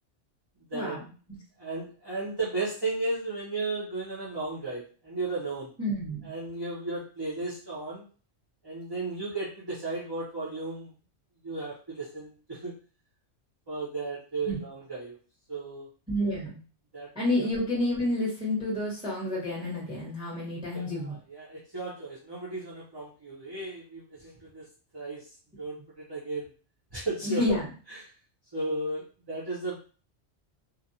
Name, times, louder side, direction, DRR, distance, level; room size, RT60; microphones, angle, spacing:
voice 1, 0.7-1.1 5.8-6.3 14.5-14.6 16.1-16.6 17.1-21.2 27.2-27.6, left 1 dB, 5° right, -6 dB, 1.0 m, -29 dB
voice 2, 1.6-5.7 6.2-8.1 8.6-10.9 11.4-12.8 13.7-15.2 15.5-15.9 16.9-17.1 17.4-17.5 20.7-24.7 24.9-26.5 26.9-27.4 27.9-28.0 28.5-29.8, right 3 dB, 25° right, -7 dB, 0.6 m, -35 dB
2.4 x 2.2 x 2.7 m, 0.38 s
omnidirectional pair, 1.2 m